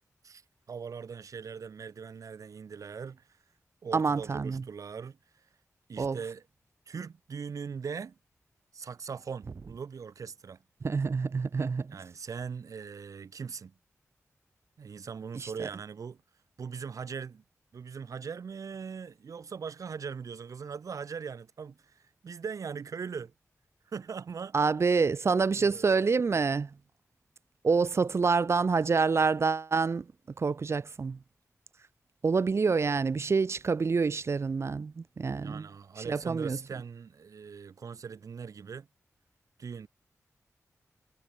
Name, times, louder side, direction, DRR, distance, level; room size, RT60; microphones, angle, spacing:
voice 1, 0.7-3.3 3.8-5.5 5.9-6.4 6.9-8.2 8.7-10.6 11.9-13.7 14.8-16.2 16.6-17.4 17.7-23.3 23.9-24.6 25.5-26.1 35.3-38.9 39.6-39.9, right 6 dB, 75° right, 6.1 m, -40 dB
voice 2, 3.9-4.6 6.0-6.2 10.8-12.0 15.3-15.5 24.5-26.7 27.6-30.0 30.4-31.2 32.2-35.7 36.1-36.6, right 4 dB, 50° right, 1.5 m, -27 dB
wide cardioid pair, 100°, 6 cm